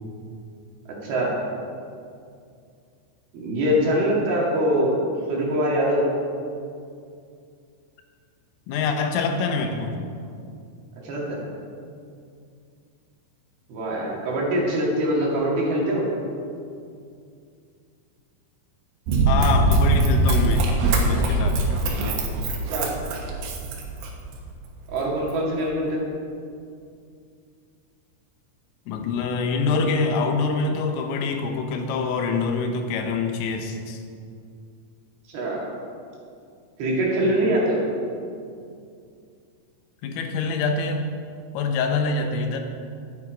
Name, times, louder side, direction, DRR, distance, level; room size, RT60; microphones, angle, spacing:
voice 1, 3.3-6.1 11.0-11.4 13.7-16.0 22.7-22.9 24.9-26.0 35.3-35.6 36.8-37.8, equal, 55° right, -4 dB, 3.6 m, -23 dB
voice 2, 8.7-9.9 19.3-21.6 28.9-34.0 40.0-41.1 41.5-42.6, left 4 dB, 85° left, 4 dB, 3.7 m, -25 dB
Run, 19.1-24.3 24.9-25.0, right 2 dB, 75° right, 3.9 m, -21 dB
12.5 x 11.0 x 5.1 m, 2.4 s
omnidirectional pair, 5.8 m